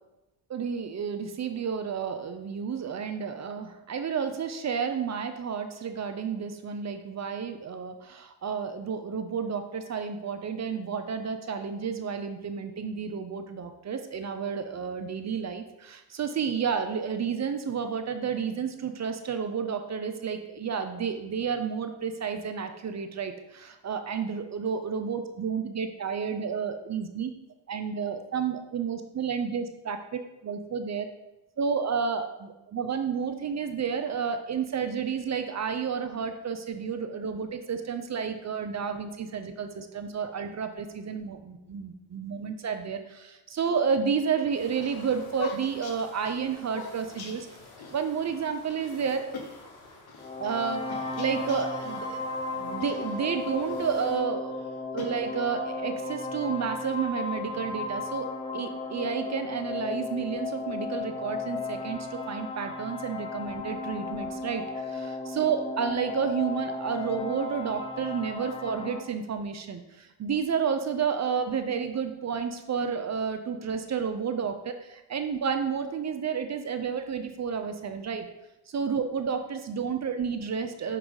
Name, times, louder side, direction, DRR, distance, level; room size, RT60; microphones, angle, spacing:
voice 1, 0.5-27.3 27.7-30.0 30.4-31.1 31.6-47.5 47.9-49.4 50.4-52.3 52.5-54.5 54.9-78.3 78.7-81.0, right 6 dB, 35° right, 7 dB, 0.6 m, -31 dB
sound 1, 44.4-54.2, left 2 dB, 90° left, 1.8 m, -50 dB
Sputtering and Coughing Vocal Motor, 44.4-48.0 48.3-48.4 48.7-48.9 49.3-50.3 50.9-52.0 52.8-53.9 54.5-55.7, left 4 dB, 55° left, 1.1 m, -43 dB
sound 2, 50.2-69.0, left 3 dB, 10° left, 0.8 m, -35 dB
6.2 x 3.8 x 4.8 m, 0.97 s
cardioid pair, 90°, 46 cm